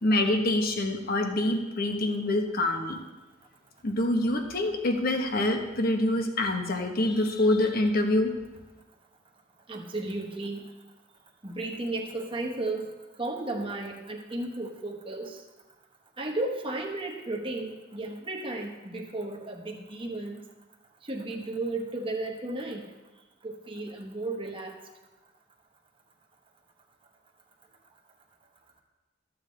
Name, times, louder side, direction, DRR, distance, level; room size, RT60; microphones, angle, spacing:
voice 1, 0.0-3.0 3.8-8.3, left 1 dB, 50° left, 4 dB, 1.0 m, -26 dB
voice 2, 9.7-10.7 11.4-15.4 16.2-20.4 21.0-22.9 23.4-24.7, right 2 dB, 30° right, 0 dB, 1.1 m, -34 dB
13.0 x 7.2 x 3.3 m, 1.1 s
head